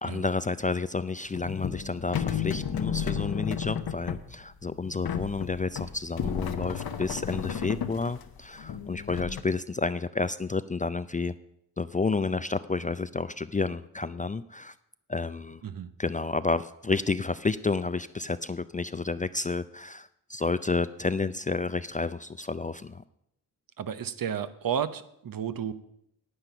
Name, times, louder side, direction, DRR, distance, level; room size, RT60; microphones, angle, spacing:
voice 1, 0.0-11.3 11.8-14.7 15.1-15.6 16.0-23.0, left 4 dB, 20° left, 13 dB, 0.4 m, -30 dB
sound 1, 1.3-9.4, left 7 dB, 60° left, 1.0 m, -33 dB
voice 2, 23.8-25.7, right 8 dB, 55° right, 12 dB, 0.8 m, -32 dB
9.8 x 8.9 x 5.7 m, 0.76 s
supercardioid pair, 45°, 41 cm